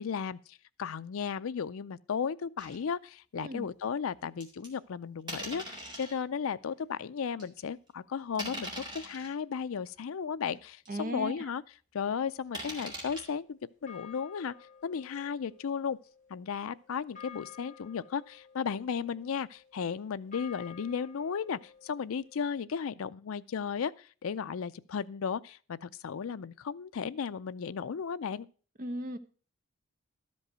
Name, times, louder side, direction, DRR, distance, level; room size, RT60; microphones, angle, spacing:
voice 1, 0.0-11.6 11.9-14.5 14.8-16.0 16.3-28.5, left 6 dB, 70° left, 0.4 m, -35 dB
sound 1, 2.6-2.8 3.3-3.4 4.4-4.7 5.3-6.1 6.8-6.9 7.4-7.6 8.3-9.3 10.0-10.1 10.5-10.6 10.9-11.0 12.5-13.2, equal, 20° right, 2.1 m, -41 dB
voice 2, 10.9-11.4 28.8-29.2, right 1 dB, 40° right, 0.7 m, -36 dB
sound 2, 12.0-13.4 13.9-22.5, left 7 dB, 35° left, 1.7 m, -54 dB
12.5 x 5.3 x 6.1 m
head